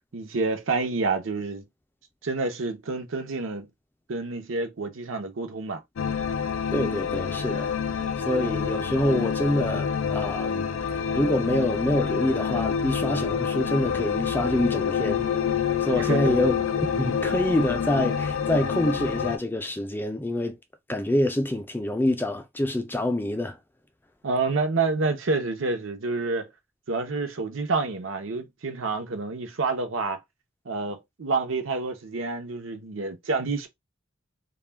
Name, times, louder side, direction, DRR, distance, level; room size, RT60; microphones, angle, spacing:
voice 1, 0.1-1.6 2.2-3.7 4.1-5.8 16.0-16.3 24.2-26.5 26.9-30.2 30.7-33.7, right 3 dB, 75° right, 0.7 m, -28 dB
sound 1, 6.0-19.4, left 7 dB, 80° left, 0.4 m, -27 dB
voice 2, 6.7-10.7 11.1-15.3 15.8-20.6 20.9-23.6, left 1 dB, 10° left, 0.4 m, -26 dB
2.3 x 2.2 x 3.3 m
head